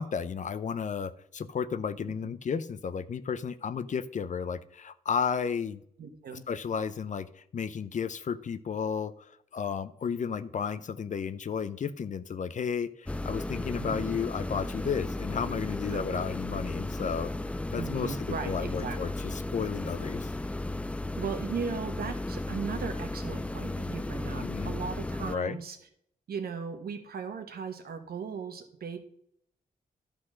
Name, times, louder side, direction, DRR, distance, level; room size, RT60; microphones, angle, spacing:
voice 1, 0.0-5.8 6.3-17.3 17.7-20.3 24.4-24.7 25.3-25.6, left 6 dB, 50° left, 14 dB, 0.6 m, -33 dB
voice 2, 6.0-6.4 13.7-14.0 15.9-16.2 17.8-19.0 21.2-25.8 26.3-29.0, right 6 dB, 75° right, 6 dB, 1.3 m, -37 dB
sound 1, 13.1-25.4, left 2 dB, 10° left, 0.3 m, -35 dB
11.5 x 4.0 x 6.3 m, 0.70 s
cardioid pair, 90°, 16 cm